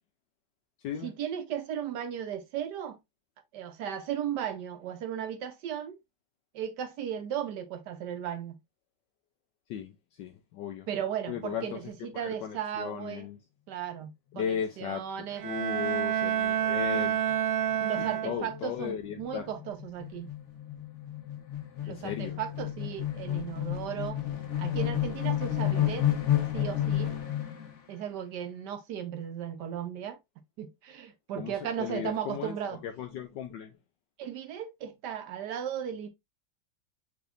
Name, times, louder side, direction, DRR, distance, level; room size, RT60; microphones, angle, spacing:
voice 1, 1.0-3.0 3.5-6.0 6.5-8.6 10.9-13.3 13.7-15.4 17.8-20.3 21.8-24.2 24.6-26.1 26.5-27.2 27.9-30.2 30.6-32.8 34.2-36.1, right 9 dB, 70° right, 1.1 m, -36 dB
voice 2, 10.2-10.9 11.3-11.8 12.2-13.4 14.3-15.0 15.4-17.2 18.0-19.5 21.9-22.4 31.4-32.5 32.8-33.7, left 8 dB, 75° left, 1.3 m, -36 dB
Bowed string instrument, 15.3-18.7, right 10 dB, 85° right, 1.4 m, -29 dB
sound 1, 17.3-17.4 17.7-17.8 18.1-27.7, left 11 dB, 45° left, 1.2 m, -31 dB
6.1 x 3.4 x 2.5 m
omnidirectional pair, 2.1 m